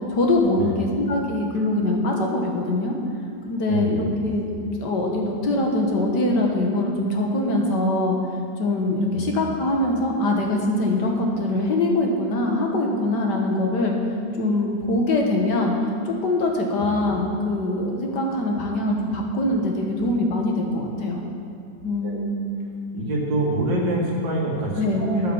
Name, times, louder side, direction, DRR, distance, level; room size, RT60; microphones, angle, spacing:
voice 1, 0.1-2.9 3.5-4.5 4.8-8.2 8.6-13.9 14.4-15.7 16.1-21.2 21.8-22.4 24.8-25.0, left 2 dB, 65° left, 0 dB, 2.0 m, -23 dB
voice 2, 3.7-4.1 9.1-9.3 16.8-16.9 22.0-22.2 22.9-25.3, right 1 dB, 80° right, -3 dB, 2.9 m, -25 dB
10.0 x 8.7 x 7.2 m, 2.4 s
omnidirectional pair, 2.0 m